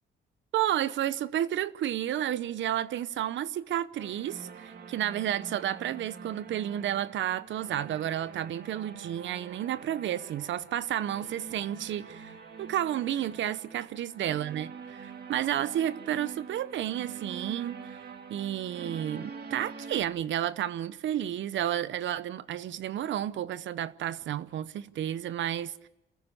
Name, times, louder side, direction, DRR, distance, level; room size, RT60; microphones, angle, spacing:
voice 1, 0.5-18.0 18.3-25.9, right 11 dB, 70° right, 0.8 m, -31 dB
sound 1, 4.0-20.0, right 6 dB, 55° right, 2.4 m, -45 dB
28.0 x 14.5 x 7.0 m
cardioid pair, 90°, 20 cm